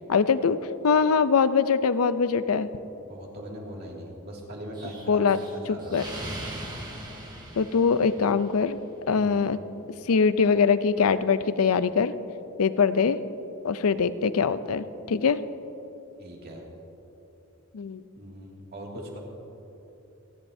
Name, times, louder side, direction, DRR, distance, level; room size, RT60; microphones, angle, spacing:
voice 1, 0.1-0.6 0.8-2.7 5.1-5.4 5.7-6.0 7.6-8.8 9.1-9.6 10.1-12.1 12.6-13.2 13.6-15.4 17.7-18.0, left 5 dB, 80° left, 13 dB, 0.5 m, -22 dB
voice 2, 3.0-5.9 9.2-9.4 16.2-16.7 18.2-19.2, right 1 dB, 45° right, -2 dB, 2.3 m, -40 dB
Explosion, 4.8-8.6, right 1 dB, 20° right, 1.4 m, -39 dB
28.0 x 10.5 x 2.7 m, 3.0 s
head